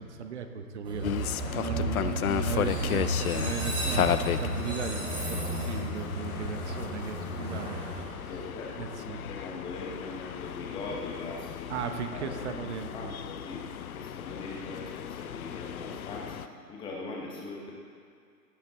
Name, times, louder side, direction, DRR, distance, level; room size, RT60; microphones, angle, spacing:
voice 1, 0.0-8.3 8.8-9.2 11.7-13.1, right 6 dB, 45° right, 7 dB, 1.0 m, -37 dB
Train, 0.8-8.8, right 1 dB, 10° right, 1.5 m, -33 dB
sound 1, 1.0-16.5, left 10 dB, 60° left, 0.5 m, -35 dB
voice 2, 8.2-11.7 12.1-12.6 12.9-17.7, left 2 dB, 10° left, -2 dB, 1.1 m, -41 dB
16.5 x 9.3 x 3.7 m, 2.3 s
hypercardioid pair, 145°, 49 cm